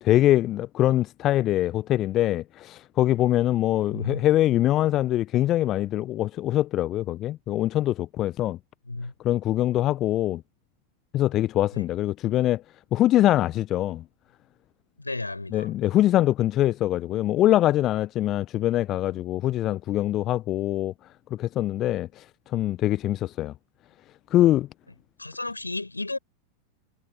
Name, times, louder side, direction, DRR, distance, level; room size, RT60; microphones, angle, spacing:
voice 1, 0.0-8.6 9.2-10.4 11.1-12.6 12.9-14.0 15.5-20.9 21.3-22.2 22.5-23.5 24.3-24.7, left 14 dB, 35° left, 0.8 m, -23 dB
voice 2, 3.9-4.4 8.8-9.1 11.7-11.8 15.0-15.7 25.2-26.2, left 2 dB, 80° left, 5.1 m, -33 dB
figure-of-eight pair, 90°, 0 cm